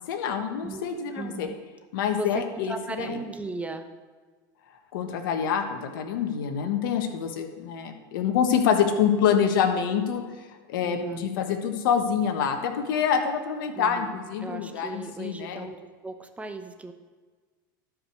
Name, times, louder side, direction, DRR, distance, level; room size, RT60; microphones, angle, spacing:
voice 1, 0.1-1.5 1.9-3.2 4.9-10.2 10.7-15.7, left 7 dB, 75° left, 5 dB, 1.4 m, -26 dB
voice 2, 1.1-1.5 2.2-3.9 10.8-11.3 13.7-15.8 16.0-16.9, right 3 dB, 10° right, 7 dB, 1.0 m, -37 dB
12.0 x 5.0 x 6.4 m, 1.4 s
hypercardioid pair, 100°, 11 cm